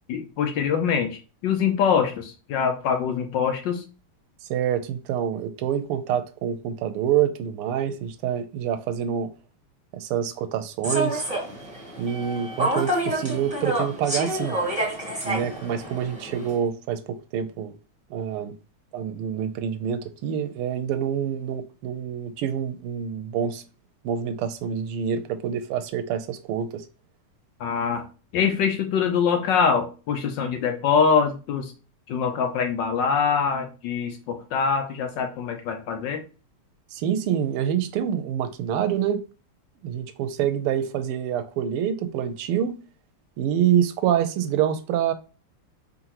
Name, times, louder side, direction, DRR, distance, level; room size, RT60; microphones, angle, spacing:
voice 1, 0.1-3.8 27.6-28.0 28.3-31.7 32.1-36.2, left 6 dB, 70° left, 1.1 m, -24 dB
voice 2, 4.5-9.3 9.9-11.2 12.0-14.6 15.2-17.7 18.1-18.5 18.9-23.6 24.0-26.8 36.9-39.2 39.8-42.8 43.4-45.1, right 9 dB, 85° right, 1.5 m, -26 dB
Human voice / Subway metro underground, 10.8-16.5, right 1 dB, 5° right, 1.2 m, -28 dB
4.2 x 3.9 x 2.9 m
omnidirectional pair, 2.4 m